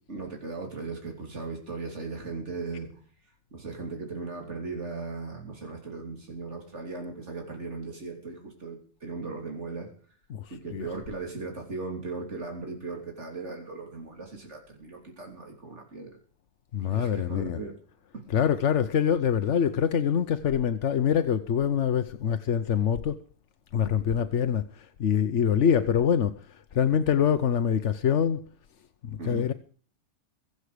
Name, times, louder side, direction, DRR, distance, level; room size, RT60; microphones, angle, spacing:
voice 1, 0.1-2.9 3.5-9.9 10.5-16.2 16.8-17.7 18.1-18.2 24.0-24.1 29.2-29.5, right 3 dB, 85° right, 3.5 m, -37 dB
voice 2, 10.3-10.8 16.7-17.6 18.3-23.2 23.7-28.4 29.0-29.5, left 8 dB, 85° left, 1.2 m, -25 dB
23.5 x 7.9 x 5.0 m
omnidirectional pair, 1.2 m